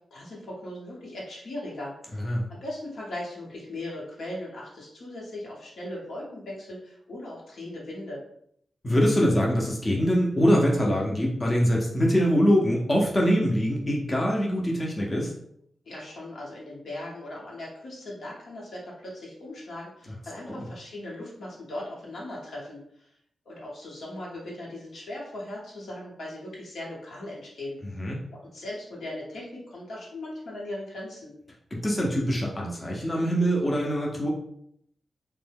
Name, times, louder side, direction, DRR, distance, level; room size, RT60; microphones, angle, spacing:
voice 1, 0.1-2.2 2.5-8.2 15.8-23.1 23.4-27.8 28.3-31.3, left 1 dB, 80° left, -4 dB, 1.0 m, -38 dB
voice 2, 8.8-15.3 20.5-20.6 28.0-28.2 31.8-34.3, equal, 30° left, -3 dB, 0.7 m, -23 dB
2.6 x 2.1 x 3.4 m, 0.70 s
cardioid pair, 70°, 0 cm